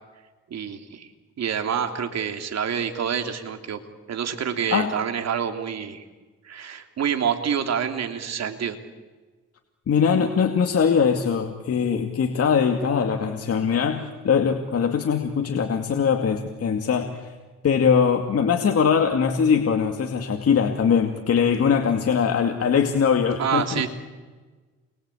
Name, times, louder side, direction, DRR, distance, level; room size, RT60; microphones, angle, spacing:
voice 1, 0.5-1.1 1.4-3.8 4.1-6.0 6.4-8.8 23.4-23.9, right 8 dB, 60° right, 6 dB, 3.2 m, -27 dB
voice 2, 9.9-17.3 17.6-23.8, left 6 dB, 50° left, 3 dB, 2.5 m, -21 dB
29.0 x 23.5 x 8.6 m, 1.3 s
cardioid pair, 90°, 30 cm